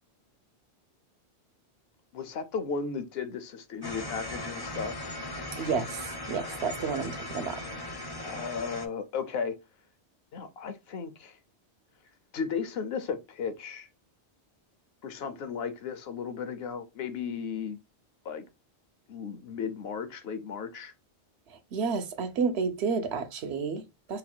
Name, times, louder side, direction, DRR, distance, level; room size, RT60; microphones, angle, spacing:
voice 1, 2.1-5.0 8.2-9.6 10.3-11.4 12.3-13.9 15.0-17.8 18.2-18.4 19.1-20.9, left 6 dB, 70° left, 0.8 m, -35 dB
sound 1, 3.8-8.9, left 1 dB, 30° left, 0.5 m, -38 dB
voice 2, 5.5-7.6 21.5-24.2, right 5 dB, 75° right, 0.9 m, -31 dB
3.1 x 2.3 x 4.3 m
omnidirectional pair, 1.1 m